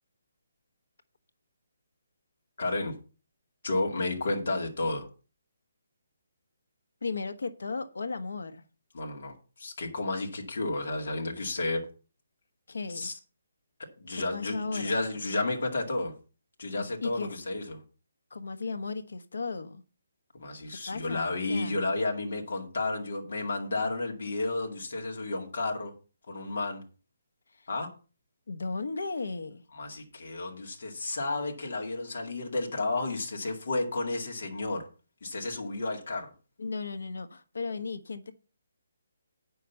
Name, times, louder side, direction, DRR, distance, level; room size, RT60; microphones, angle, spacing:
voice 1, 2.6-2.9 3.6-5.1 8.9-11.8 12.9-13.1 14.0-16.1 16.6-17.8 20.3-25.9 26.3-26.8 27.7-27.9 29.7-34.8 35.2-36.3, left 2 dB, 45° left, 2.1 m, -32 dB
voice 2, 7.0-8.6 12.7-13.1 14.1-15.0 16.8-17.3 18.3-19.8 20.7-21.8 27.6-27.7 28.5-29.6 36.6-38.3, left 4 dB, 85° left, 1.1 m, -36 dB
9.2 x 5.9 x 6.8 m
hypercardioid pair, 180°, 0 cm